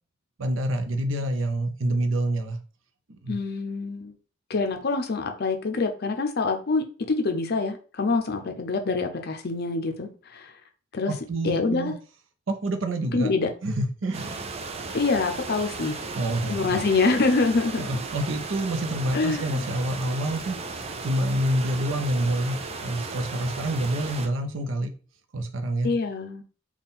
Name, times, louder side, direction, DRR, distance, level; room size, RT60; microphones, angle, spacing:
voice 1, 0.4-2.6 3.1-3.3 11.1-11.9 12.5-13.3 13.6-14.5 16.2-16.8 17.8-20.6 21.0-24.9 25.3-25.9, right 1 dB, 75° right, 0.6 m, -27 dB
voice 2, 3.3-4.1 4.5-10.5 10.9-11.1 11.4-12.0 13.1-13.5 14.9-16.0 16.5-17.8 19.1-19.7 25.8-26.4, left 3 dB, 55° left, 0.6 m, -25 dB
sound 1, 14.1-24.3, right 4 dB, 30° right, 0.4 m, -36 dB
3.7 x 2.3 x 4.1 m
head